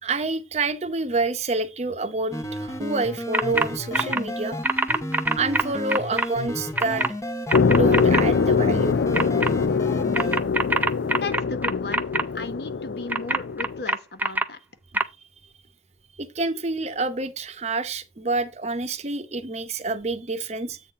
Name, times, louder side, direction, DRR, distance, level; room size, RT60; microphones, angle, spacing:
voice 1, 0.0-4.6 5.3-7.1 7.7-9.0 16.2-20.8, right 3 dB, 40° right, 0.8 m, -28 dB
sound 1, 2.3-10.4, left 1 dB, 20° left, 0.8 m, -32 dB
sound 2, 3.3-3.7 3.9-4.2 4.6-6.3 6.8-7.1 7.5-8.2 9.1-9.5 10.1-12.2 13.1-14.4 14.9-15.0, right 2 dB, 10° right, 0.5 m, -23 dB
sound 3, 7.5-13.8, left 5 dB, 85° left, 0.4 m, -23 dB
voice 2, 11.0-12.1 12.3-14.6 14.9-15.0, left 3 dB, 65° left, 1.0 m, -35 dB
8.2 x 3.9 x 5.5 m
head